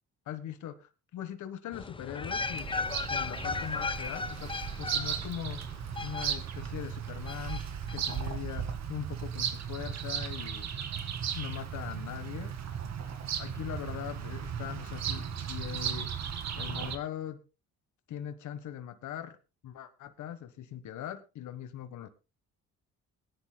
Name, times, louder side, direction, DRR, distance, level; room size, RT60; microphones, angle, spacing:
voice 1, 0.3-2.7 3.1-10.7 11.3-12.5 13.0-16.1 16.5-17.4 18.1-19.4 19.6-22.1, left 10 dB, 75° left, 9 dB, 1.5 m, -41 dB
sound 1, 1.7-6.7 7.3-8.2 8.5-8.6, left 4 dB, 15° left, 0.7 m, -36 dB
Bird vocalization bird call bird song, 2.3-17.0, right 8 dB, 60° right, 2.1 m, -36 dB
22.0 x 10.5 x 2.3 m, 0.29 s
cardioid pair, 90°, 30 cm